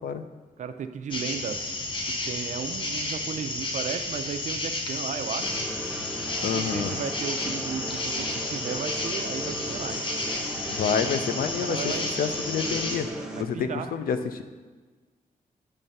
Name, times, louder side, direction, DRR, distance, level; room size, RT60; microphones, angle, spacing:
voice 1, 0.6-1.7 2.2-5.5 6.5-10.0 11.3-12.2 13.4-13.9, right 7 dB, 55° right, 9 dB, 0.4 m, -35 dB
sound 1, 1.1-13.0, left 2 dB, 35° left, 0.8 m, -32 dB
sound 2, 5.4-13.4, right 1 dB, 5° right, 0.5 m, -37 dB
voice 2, 6.4-7.0 10.7-13.1 13.4-14.4, left 7 dB, 85° left, 9 dB, 0.5 m, -28 dB
8.8 x 3.3 x 5.4 m, 1.3 s
wide cardioid pair, 170°, 15 cm